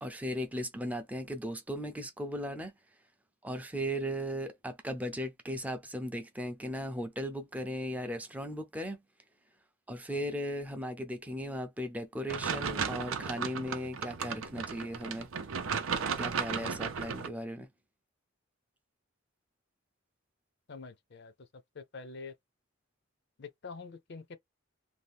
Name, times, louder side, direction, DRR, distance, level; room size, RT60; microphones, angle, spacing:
voice 1, 0.0-2.7 3.4-9.0 9.9-15.3 16.2-17.7, equal, 5° right, 0.5 m, -37 dB
sound 1, 12.3-17.3, right 6 dB, 80° right, 0.6 m, -35 dB
voice 2, 20.7-21.3 21.8-22.3 23.4-24.4, left 4 dB, 55° left, 0.5 m, -45 dB
2.7 x 2.4 x 3.4 m
head